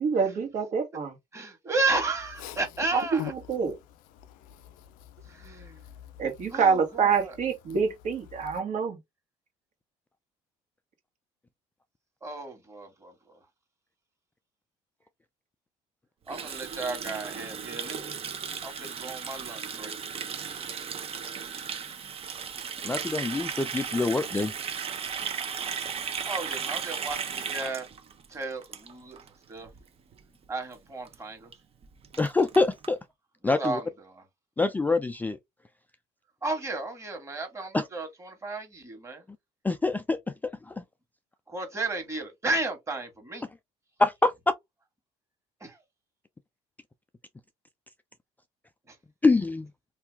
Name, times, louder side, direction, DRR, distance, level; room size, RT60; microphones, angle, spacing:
voice 1, 0.0-1.2 2.9-3.7 6.2-9.0, right 5 dB, 60° right, 1.4 m, -26 dB
voice 2, 1.3-3.3 5.3-5.9 6.5-7.4 12.2-13.1 16.3-18.0 18.6-19.9 26.2-27.9 28.3-29.2 29.5-29.7 30.5-31.5 33.4-34.2 36.4-39.2 41.5-43.4 48.9-49.0, right 3 dB, 20° right, 1.6 m, -33 dB
voice 3, 4.1-6.2, left 12 dB, 80° left, 0.5 m, -43 dB
Water tap faucet, 16.3-29.3 29.6-29.8 30.1-30.5 30.7-30.8 31.1-31.2 31.5-31.6 31.8-32.9, right 7 dB, 45° right, 0.8 m, -36 dB
voice 4, 22.8-24.5 32.2-33.0 33.4-33.8 34.6-35.4 37.7-37.8 39.6-40.2 40.7-40.8 44.0-44.3 49.2-49.7, left 3 dB, 10° left, 0.4 m, -25 dB
2.7 x 2.4 x 3.4 m
supercardioid pair, 80°, 14 cm